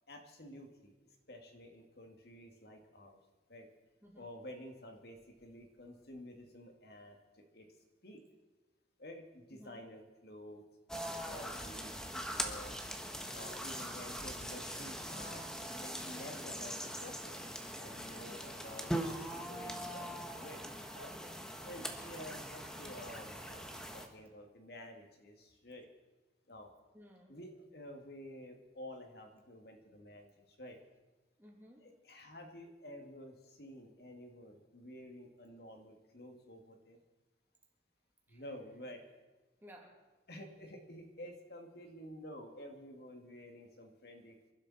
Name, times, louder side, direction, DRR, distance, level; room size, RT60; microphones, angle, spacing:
voice 1, 0.1-0.9 1.3-3.2 3.5-3.7 4.1-7.7 8.0-8.2 9.0-10.6 11.2-12.8 13.3-17.4 17.8-20.6 20.9-21.1 21.6-25.9 26.5-26.7 27.3-30.8 31.8-37.0 38.3-39.0 40.3-44.5, left 1 dB, 60° left, 3 dB, 2.3 m, -51 dB
voice 2, 9.5-9.8 13.8-14.1 18.1-18.6 21.1-21.4 26.9-27.4 31.4-31.8 38.3-38.4 39.6-40.0, equal, 10° right, -1 dB, 2.7 m, -57 dB
sound 1, 10.9-24.1, equal, 5° left, 1.2 m, -42 dB
27.5 x 12.0 x 4.3 m, 1.1 s
head